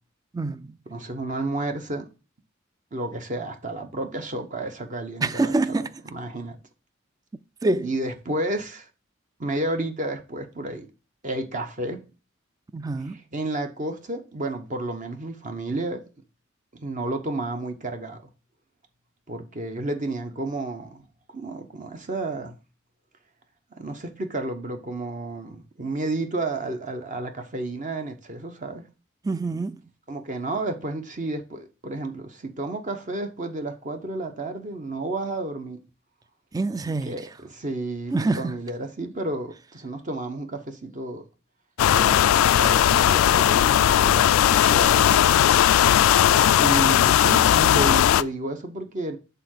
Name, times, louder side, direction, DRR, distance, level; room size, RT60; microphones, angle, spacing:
voice 1, 0.3-0.8 5.2-5.9 7.6-7.9 12.7-13.2 29.2-29.8 36.5-37.1 38.1-38.5, right 2 dB, 20° right, 0.3 m, -25 dB
voice 2, 0.9-2.1 2.9-6.6 7.8-8.9 9.4-10.9 11.2-12.0 13.0-16.0 16.7-18.2 19.3-21.0 21.3-22.6 23.8-28.9 30.1-35.8 36.9-41.2 41.9-44.4 44.7-45.5 46.5-49.2, right 2 dB, 40° right, 0.9 m, -31 dB
sound 1, 41.8-48.2, left 10 dB, 90° left, 0.3 m, -18 dB
6.8 x 3.7 x 6.3 m
head